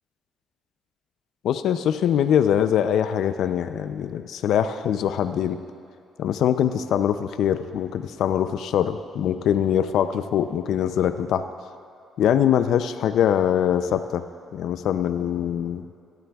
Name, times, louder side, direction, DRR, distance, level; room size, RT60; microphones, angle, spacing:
voice 1, 1.4-5.6 6.2-11.4 12.2-14.2 14.5-15.8, left 9 dB, 75° left, 10 dB, 0.4 m, -23 dB
16.0 x 11.5 x 2.3 m, 2.5 s
cardioid pair, 90°, 0 cm